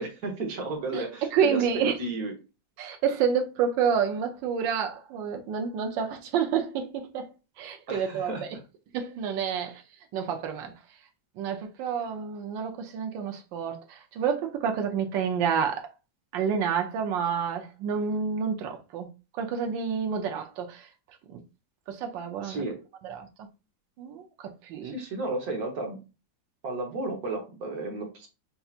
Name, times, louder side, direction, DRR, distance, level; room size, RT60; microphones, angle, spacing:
voice 1, 0.0-2.3 7.9-8.6 22.4-22.8 24.8-26.0 26.6-28.3, right 2 dB, 60° right, 1.4 m, -33 dB
voice 2, 1.3-2.0 2.8-7.3 7.6-8.3 8.9-9.8 10.1-10.7 11.4-15.9 16.3-20.9 21.3-21.4 21.9-22.6 23.0-23.3 24.0-24.9, right 7 dB, 85° right, 1.4 m, -29 dB
5.6 x 2.7 x 2.4 m
omnidirectional pair, 2.0 m